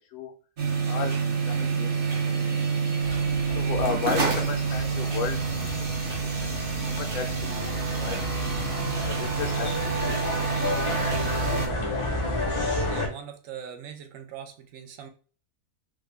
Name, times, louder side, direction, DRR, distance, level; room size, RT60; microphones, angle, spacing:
sound 1, 0.6-11.7, right 5 dB, 45° right, 0.8 m, -28 dB
voice 1, 1.5-2.8 3.5-5.4 6.4-6.5 6.9-8.2 8.9-10.2, left 6 dB, 75° left, 6 dB, 1.0 m, -34 dB
sound 2, 3.0-13.1, left 1 dB, 40° left, 0.4 m, -32 dB
voice 2, 12.8-15.1, right 8 dB, 70° right, 6 dB, 0.9 m, -41 dB
3.5 x 2.2 x 3.2 m, 0.40 s
omnidirectional pair, 1.6 m